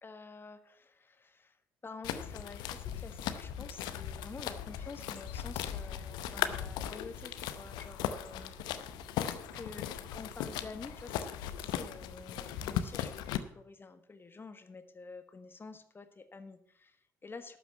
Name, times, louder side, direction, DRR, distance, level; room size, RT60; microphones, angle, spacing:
voice 1, 0.0-8.5 9.3-17.6, left 4 dB, 30° left, 9 dB, 1.5 m, -49 dB
sound 1, 2.0-13.4, left 11 dB, 70° left, 0.7 m, -38 dB
Aircraft, 2.3-12.9, right 2 dB, 70° right, 2.8 m, -55 dB
12.5 x 6.0 x 7.3 m, 0.70 s
hypercardioid pair, 50°, 8 cm